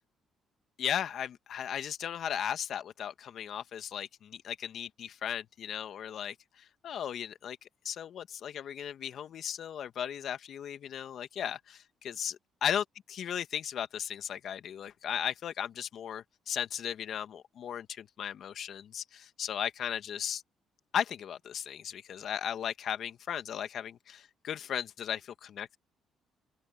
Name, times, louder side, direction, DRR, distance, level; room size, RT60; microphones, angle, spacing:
voice 1, 0.8-12.3 12.6-20.4 20.9-25.8, left 9 dB, 65° left, 1.9 m, -36 dB
open air
supercardioid pair, 60°, 0 cm